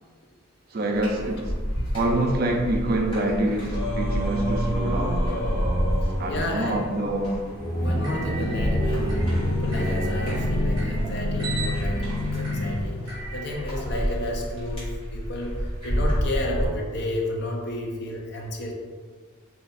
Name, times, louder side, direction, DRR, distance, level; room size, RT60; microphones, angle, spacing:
voice 1, 0.7-1.5 1.9-5.3 6.0-7.4, right 1 dB, 45° right, 2 dB, 0.4 m, -26 dB
sound 1, 0.9-16.7, equal, 25° left, 1.3 m, -30 dB
Singing, 3.7-11.1, equal, 70° left, 1.3 m, -30 dB
voice 2, 6.0-6.9 7.7-18.7, left 1 dB, 50° left, -1 dB, 0.6 m, -32 dB
sound 2, 7.8-14.4, left 1 dB, 20° right, 0.9 m, -29 dB
2.8 x 2.4 x 4.1 m, 1.5 s
head